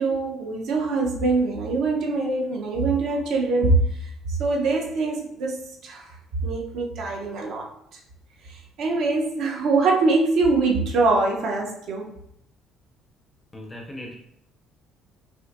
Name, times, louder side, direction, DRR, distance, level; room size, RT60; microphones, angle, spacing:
voice 1, 0.0-6.1 6.4-7.6 8.5-12.1, right 3 dB, 55° right, 0 dB, 0.8 m, -23 dB
voice 2, 13.5-14.2, left 1 dB, 10° left, 1 dB, 0.6 m, -38 dB
6.2 x 2.6 x 2.6 m, 0.74 s
cardioid pair, 175°, 0 cm